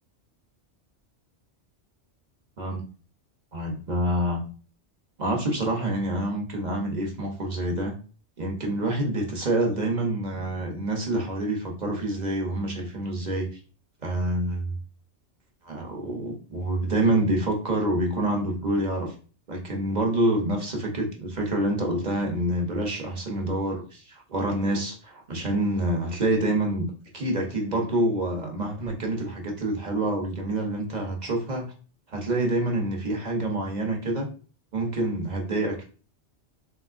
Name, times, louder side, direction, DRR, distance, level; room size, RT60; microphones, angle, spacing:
voice 1, 3.5-4.4 5.2-7.9 8.4-13.5 14.0-14.7 15.6-19.1 19.5-31.7 32.1-34.3 34.7-35.8, right 1 dB, 45° right, 1 dB, 0.7 m, -27 dB
3.5 x 3.0 x 2.4 m, 0.37 s
omnidirectional pair, 1.2 m